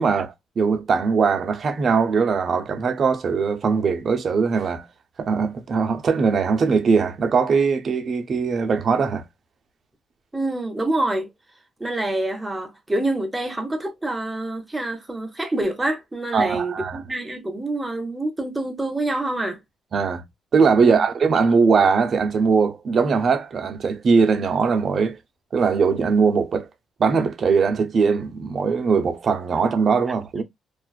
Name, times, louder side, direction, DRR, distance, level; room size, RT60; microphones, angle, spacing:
voice 1, 0.0-4.9 5.2-9.2 16.3-17.0 19.9-20.2 20.5-25.2 25.5-26.7 27.0-30.4, right 5 dB, 50° right, 0.5 m, -20 dB
voice 2, 10.3-11.3 11.8-19.6 20.8-21.0, right 2 dB, 15° right, 0.7 m, -26 dB
2.4 x 2.2 x 2.3 m
cardioid pair, 90°, 0 cm